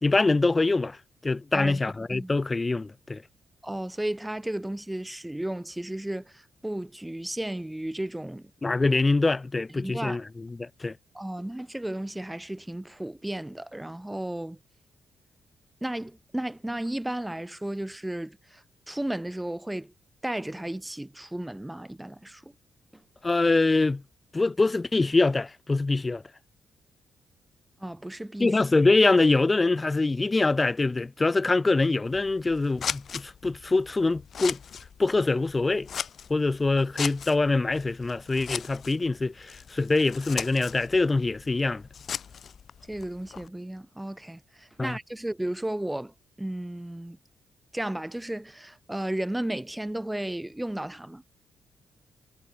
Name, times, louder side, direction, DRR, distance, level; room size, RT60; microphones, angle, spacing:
voice 1, 0.0-1.0 1.2-3.2 8.6-10.2 10.6-10.9 23.2-24.0 24.3-26.2 28.4-34.6 35.0-35.9 36.3-41.8 44.8-44.9, left 3 dB, 25° left, 1.6 m, -24 dB
voice 2, 3.6-8.5 9.7-10.2 11.1-14.6 15.8-19.9 20.2-22.5 22.9-23.0 27.8-28.6 42.9-47.2 47.7-51.2, right 1 dB, 10° right, 5.6 m, -34 dB
Scissors, 32.0-43.5, left 7 dB, 60° left, 3.2 m, -39 dB
supercardioid pair, 65°, 0 cm